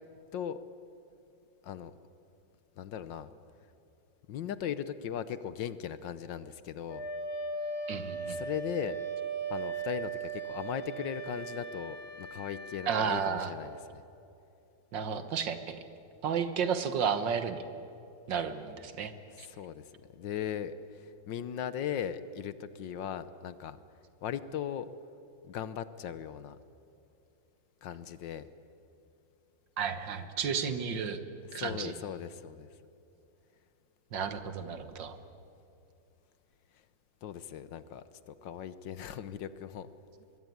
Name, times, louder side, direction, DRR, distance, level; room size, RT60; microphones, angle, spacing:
voice 1, 2.8-3.3 4.3-7.1 8.3-9.0 9.5-14.0 19.3-19.8 20.1-23.8 24.2-24.9 25.4-26.6 27.8-28.5 31.5-32.7 37.2-39.9, left 9 dB, 70° left, 14 dB, 1.5 m, -38 dB
Wind instrument woodwind instrument, 6.9-13.4, right 4 dB, 85° left, 4.1 m, -38 dB
voice 2, 7.9-8.4 12.9-13.5 14.9-15.8 16.2-17.6 18.3-19.1 19.4-19.5 29.8-31.2 31.5-31.9 34.1-35.2, right 7 dB, 65° right, 10 dB, 2.0 m, -32 dB
24.5 x 21.5 x 9.3 m, 2.7 s
omnidirectional pair, 2.2 m